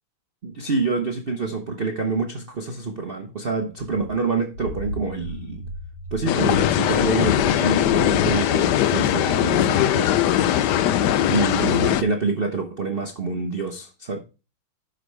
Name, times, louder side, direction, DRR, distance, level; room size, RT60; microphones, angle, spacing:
voice 1, 0.4-5.7 6.1-10.1 11.3-14.2, right 4 dB, 60° right, 0.5 m, -27 dB
sound 1, 3.7-8.4, left 1 dB, 55° left, 2.1 m, -35 dB
sound 2, 6.3-12.0, left 11 dB, 75° left, 0.9 m, -20 dB
11.5 x 5.2 x 3.3 m
omnidirectional pair, 2.4 m